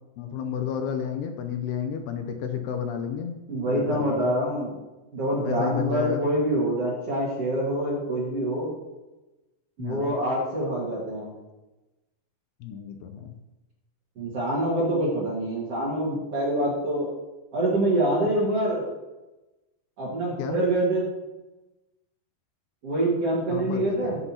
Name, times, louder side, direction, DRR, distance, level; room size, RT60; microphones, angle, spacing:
voice 1, 0.2-3.4 3.7-4.3 5.4-6.2 9.8-10.1 12.6-13.4 20.4-20.6 23.5-24.2, left 8 dB, 80° left, 6 dB, 2.6 m, -31 dB
voice 2, 3.5-4.8 5.1-8.7 9.8-11.3 14.2-17.1 17.5-18.9 20.0-21.1 22.8-24.2, right 1 dB, 50° right, -5 dB, 2.1 m, -25 dB
13.5 x 8.0 x 2.8 m, 1.0 s
omnidirectional pair, 5.0 m